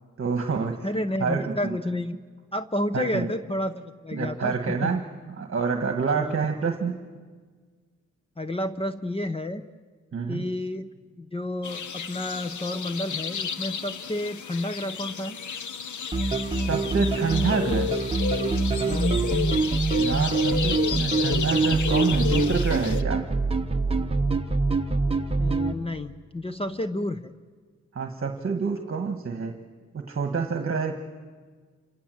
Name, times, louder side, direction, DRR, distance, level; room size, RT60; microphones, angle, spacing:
voice 1, 0.2-0.8 1.2-1.8 2.9-3.3 4.1-5.0 5.4-6.9 10.1-10.4 16.6-17.9 20.0-23.2 27.9-29.5 29.9-31.0, right 5 dB, 45° right, 5 dB, 1.5 m, -27 dB
voice 2, 0.8-2.2 2.5-4.9 6.2-6.4 8.4-9.7 10.3-15.4 18.9-19.1 25.4-27.3, left 1 dB, 20° left, 9 dB, 0.7 m, -31 dB
sound 1, 11.6-23.0, left 7 dB, 85° left, 1.1 m, -32 dB
sound 2, 16.1-25.7, right 3 dB, 20° right, 1.3 m, -25 dB
28.5 x 27.0 x 7.8 m, 1.5 s
wide cardioid pair, 145°, 29 cm